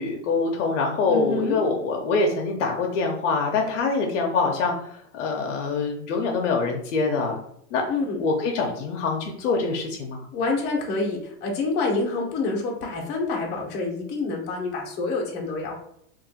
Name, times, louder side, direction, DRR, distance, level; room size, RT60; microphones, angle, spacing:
voice 1, 0.0-4.7 5.1-7.4 7.7-7.8 8.2-10.2, left 4 dB, 55° left, 2 dB, 0.7 m, -24 dB
voice 2, 1.1-1.6 7.9-8.2 10.3-15.8, left 3 dB, 25° left, -1 dB, 0.8 m, -27 dB
2.6 x 2.5 x 4.0 m, 0.73 s
supercardioid pair, 150°, 43 cm